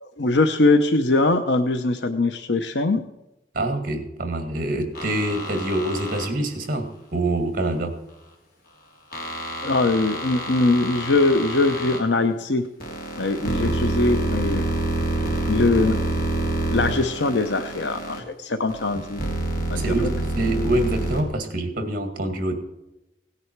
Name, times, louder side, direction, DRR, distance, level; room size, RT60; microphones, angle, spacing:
voice 1, 0.0-3.0 9.6-12.6 13.2-14.7 15.5-16.0 16.7-19.2 19.7-19.9, left 2 dB, 75° left, 8 dB, 0.8 m, -21 dB
voice 2, 3.5-7.9 19.8-22.5, right 1 dB, 50° right, 7 dB, 2.1 m, -25 dB
sound 1, 4.9-6.3 9.1-12.0 12.8-18.2 18.7-21.2, right 1 dB, 55° left, 2.9 m, -27 dB
17.5 x 10.0 x 4.6 m, 0.95 s
head